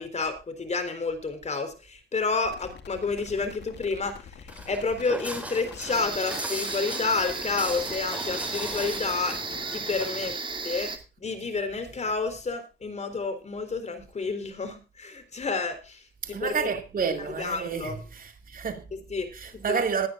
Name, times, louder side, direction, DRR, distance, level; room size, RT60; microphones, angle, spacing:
voice 1, 0.0-9.4 9.7-10.4 10.6-16.7 17.0-18.0 18.9-19.3 19.6-19.8, left 4 dB, 35° left, 3.8 m, -30 dB
sound 1, 2.4-10.0, left 7 dB, 60° left, 2.3 m, -46 dB
Walk footsteps, 4.5-10.3, right 1 dB, 5° right, 6.4 m, -38 dB
sound 2, 5.9-11.0, right 3 dB, 25° right, 2.5 m, -34 dB
voice 2, 16.2-18.8 19.3-20.1, right 6 dB, 45° right, 2.5 m, -30 dB
20.5 x 9.6 x 2.5 m
cardioid pair, 90°, 20 cm